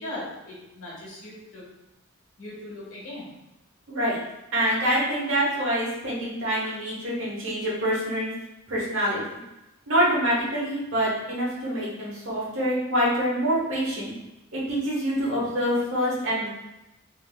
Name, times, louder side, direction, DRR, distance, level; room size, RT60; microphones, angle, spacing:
voice 1, 0.0-1.6 2.4-3.3, left 1 dB, 75° left, -5 dB, 1.3 m, -38 dB
voice 2, 3.9-4.2 4.5-8.3 8.7-9.4 9.9-14.1 14.5-16.5, equal, 65° right, -6 dB, 1.3 m, -26 dB
3.6 x 3.2 x 2.3 m, 0.93 s
head